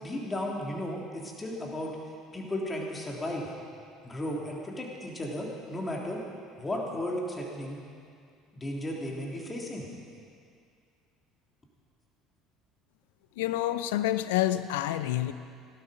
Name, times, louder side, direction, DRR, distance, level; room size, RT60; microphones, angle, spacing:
voice 1, 0.0-2.0 2.3-3.5 4.0-6.2 6.6-7.8 8.5-9.9, left 1 dB, 20° left, -2 dB, 3.3 m, -34 dB
voice 2, 13.4-15.3, left 14 dB, 75° left, 13 dB, 0.6 m, -28 dB
17.5 x 12.5 x 5.3 m, 2.3 s
hypercardioid pair, 65°, 0 cm